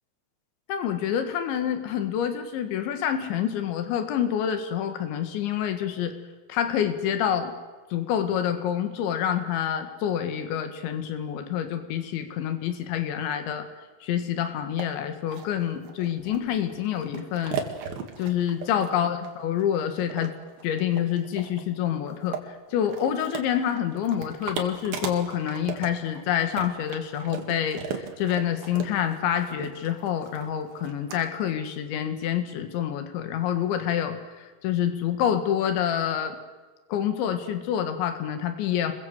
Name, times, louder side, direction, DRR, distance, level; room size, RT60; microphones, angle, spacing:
voice 1, 0.7-6.1 6.5-7.5 7.9-13.7 14.0-17.6 18.2-20.3 20.6-36.4 36.9-38.9, left 9 dB, 85° left, 8 dB, 4.0 m, -27 dB
sound 1, 14.8-14.9 15.3-31.2, right 7 dB, 60° right, 3.6 m, -37 dB
26.5 x 22.0 x 7.9 m, 1.3 s
omnidirectional pair, 5.2 m